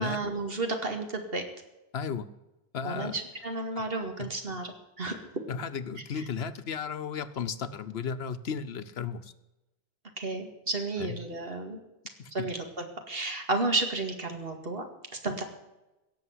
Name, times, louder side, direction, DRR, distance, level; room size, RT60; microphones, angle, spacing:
voice 1, 0.0-1.4 2.8-5.2 6.2-6.3 10.2-11.8 12.3-15.4, right 2 dB, 65° right, 5 dB, 2.3 m, -32 dB
voice 2, 1.9-2.3 2.7-3.2 4.2-4.3 5.5-9.3 11.0-11.2, left 6 dB, 75° left, 12 dB, 1.1 m, -34 dB
17.0 x 7.1 x 9.5 m, 1.0 s
omnidirectional pair, 1.1 m